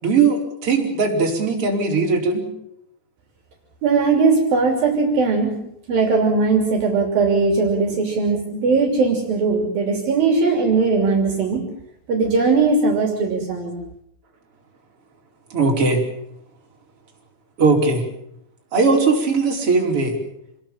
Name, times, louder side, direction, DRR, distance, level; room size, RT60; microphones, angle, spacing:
voice 1, 0.0-2.4 15.5-16.0 17.6-18.0 18.7-20.2, right 4 dB, 35° right, 0 dB, 5.5 m, -19 dB
voice 2, 3.8-5.5 5.9-11.6 12.1-13.8, right 4 dB, 60° right, 3 dB, 4.8 m, -19 dB
27.0 x 21.5 x 7.3 m, 0.75 s
omnidirectional pair, 4.6 m